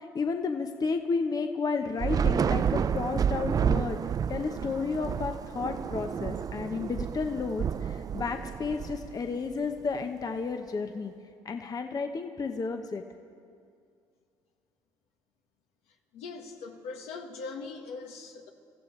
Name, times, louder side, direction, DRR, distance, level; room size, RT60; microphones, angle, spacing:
voice 1, 0.0-4.0 4.3-11.1 11.4-13.0, left 4 dB, 35° left, 6 dB, 1.0 m, -32 dB
Thunder / Rain, 2.0-9.5, right 7 dB, 35° right, 0.3 m, -30 dB
voice 2, 16.1-18.5, left 4 dB, 75° left, 2 dB, 1.6 m, -41 dB
28.0 x 14.5 x 3.3 m, 2.3 s
supercardioid pair, 65°, 11 cm